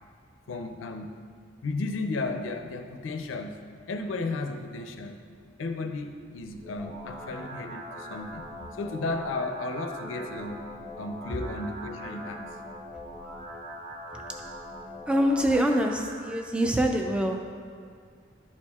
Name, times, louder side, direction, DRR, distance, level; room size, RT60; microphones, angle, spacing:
voice 1, 0.5-1.1 1.6-3.6 3.9-5.2 5.6-8.5 8.8-10.6 11.0-12.4, left 3 dB, 85° left, 6 dB, 0.5 m, -34 dB
sound 1, 6.4-16.4, equal, 35° right, 1.5 m, -42 dB
voice 2, 15.1-17.4, equal, 5° right, 3 dB, 0.3 m, -25 dB
11.5 x 4.3 x 2.3 m, 2.2 s
head